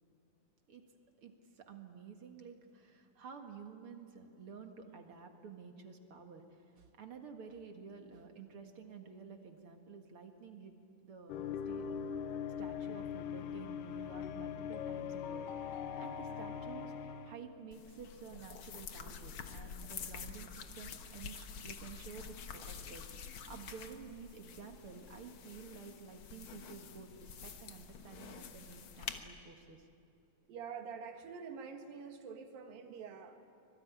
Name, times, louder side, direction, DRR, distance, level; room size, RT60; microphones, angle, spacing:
voice 1, 1.2-10.7 11.0-11.9 12.6-29.9, right 5 dB, 45° right, 5 dB, 2.1 m, -51 dB
sound 1, 11.3-17.4, left 7 dB, 75° left, 2.5 m, -41 dB
sound 2, 17.7-29.2, left 7 dB, 60° left, 1.4 m, -48 dB
voice 2, 30.5-33.5, right 6 dB, 80° right, 5 dB, 3.4 m, -46 dB
25.0 x 21.5 x 9.5 m, 2.6 s
omnidirectional pair, 4.0 m